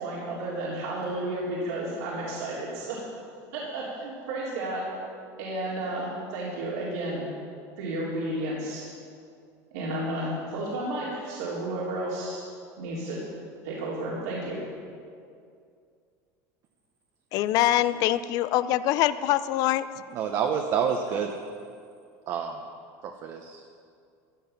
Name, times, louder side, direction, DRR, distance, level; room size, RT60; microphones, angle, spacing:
voice 1, 0.0-3.0 3.5-4.9 5.4-7.3 7.8-8.9 9.7-12.4 12.8-13.2 13.6-14.6, right 1 dB, 90° right, -7 dB, 3.6 m, -32 dB
voice 2, 17.3-19.9, left 13 dB, 45° left, 14 dB, 0.5 m, -24 dB
voice 3, 20.1-21.3 22.3-22.6 23.0-23.7, right 7 dB, 40° right, 3 dB, 0.9 m, -28 dB
15.0 x 12.0 x 5.8 m, 2.3 s
cardioid pair, 160°, 8 cm